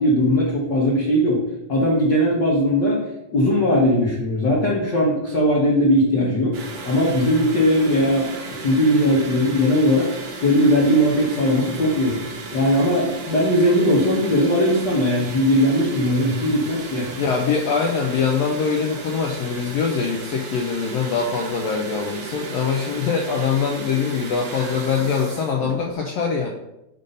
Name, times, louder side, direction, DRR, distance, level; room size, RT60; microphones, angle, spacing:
voice 1, 0.0-1.4 1.7-3.0 3.3-6.6 6.8-8.3 8.6-10.1 10.4-12.2 12.5-17.1, equal, 65° left, -4 dB, 1.1 m, -19 dB
sound 1, 6.5-25.9, right 3 dB, 90° right, 0.9 m, -35 dB
voice 2, 17.2-26.5, left 5 dB, 80° left, 1 dB, 1.5 m, -23 dB
5.3 x 5.2 x 4.0 m, 0.88 s
omnidirectional pair, 3.5 m